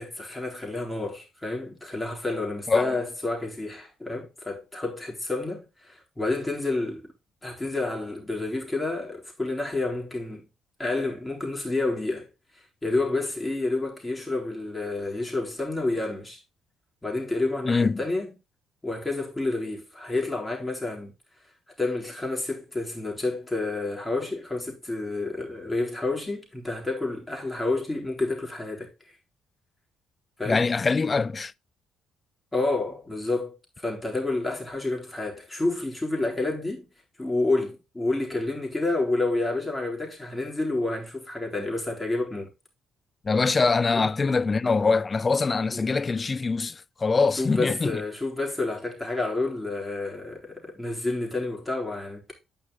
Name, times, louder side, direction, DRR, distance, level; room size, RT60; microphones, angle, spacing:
voice 1, 0.0-7.1 7.4-10.5 10.8-12.3 12.8-16.4 17.0-18.4 18.8-21.1 21.8-28.9 30.4-30.7 32.5-36.9 37.2-42.5 43.9-44.1 45.7-45.9 47.4-52.3, left 2 dB, 15° left, 4.0 m, -29 dB
voice 2, 17.7-18.0 30.5-31.5 43.3-48.0, left 4 dB, 35° left, 0.4 m, -23 dB
8.9 x 5.7 x 3.8 m
hypercardioid pair, 50°, 0 cm